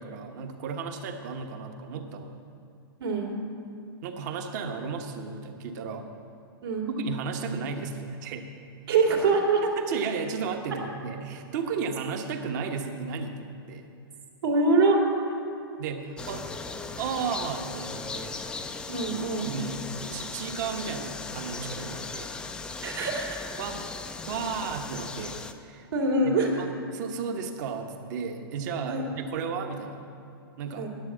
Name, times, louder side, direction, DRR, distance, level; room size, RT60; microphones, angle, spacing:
voice 1, 0.0-2.4 4.0-6.1 7.0-8.5 9.6-13.9 15.8-16.5 16.9-18.4 19.4-19.8 20.1-22.3 23.6-23.9 24.3-25.9 26.2-30.0 30.6-30.9, right 5 dB, 45° right, 5 dB, 1.1 m, -34 dB
voice 2, 3.0-3.4 6.6-6.9 8.9-9.6 14.4-15.0 18.9-19.5 22.8-23.4 25.9-26.5 28.9-29.1 30.8-30.9, right 3 dB, 75° right, -2 dB, 2.6 m, -24 dB
sound 1, 16.2-25.5, left 4 dB, 5° left, 0.3 m, -38 dB
10.0 x 8.0 x 7.2 m, 2.7 s
hypercardioid pair, 145°, 13 cm